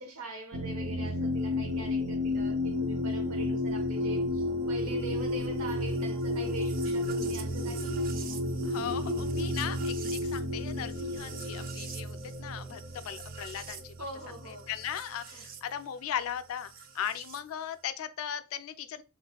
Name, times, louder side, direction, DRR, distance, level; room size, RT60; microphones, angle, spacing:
voice 1, 0.0-8.0 14.0-14.7 15.3-15.5, right 2 dB, 85° right, 0.9 m, -43 dB
sound 1, 0.5-15.6 16.8-17.4, left 1 dB, 40° right, 0.4 m, -32 dB
voice 2, 8.6-9.9 10.2-13.9 14.5-19.0, left 9 dB, 75° left, 0.3 m, -38 dB
3.2 x 3.1 x 2.3 m
head